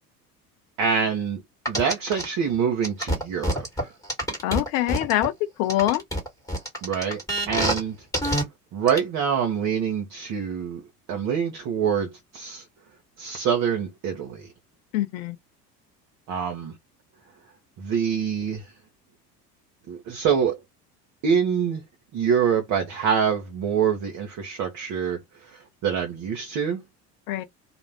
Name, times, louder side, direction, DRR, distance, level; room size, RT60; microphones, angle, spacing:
voice 1, 0.8-3.9 6.8-7.2 7.5-8.0 8.7-10.8 11.1-12.6 13.2-14.5 16.3-16.8 17.8-18.7 19.9-20.6 21.2-21.8 22.1-25.2 25.4-26.8, right 7 dB, 40° right, 0.8 m, -25 dB
sound 1, 1.7-2.2 2.8-5.3 5.7-7.8 8.1-8.4 8.9-9.0, equal, 5° left, 1.3 m, -26 dB
voice 2, 4.4-5.3 5.6-6.0 14.9-15.4 27.3-27.4, left 14 dB, 55° left, 0.6 m, -24 dB
2.4 x 2.1 x 3.2 m
figure-of-eight pair, 70°, 48 cm